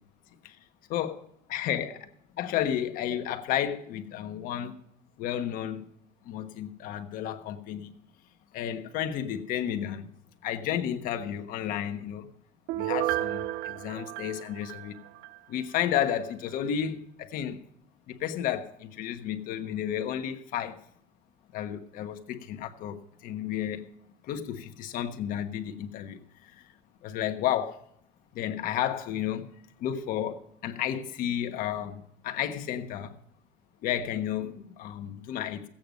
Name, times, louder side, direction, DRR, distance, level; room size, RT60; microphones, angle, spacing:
voice 1, 0.9-1.9 2.4-4.7 5.2-5.8 6.2-8.0 8.5-10.1 10.4-12.3 12.7-15.0 15.5-17.6 18.1-20.8 21.5-23.9 24.2-26.6 27.0-27.8 28.3-29.5 29.8-33.1 33.8-35.6, left 10 dB, 55° left, 1.3 m, -32 dB
Piano, 12.7-15.4 15.8-15.9, right 14 dB, 70° right, 0.4 m, -32 dB
15.0 x 8.9 x 5.2 m
cardioid pair, 150°, 17 cm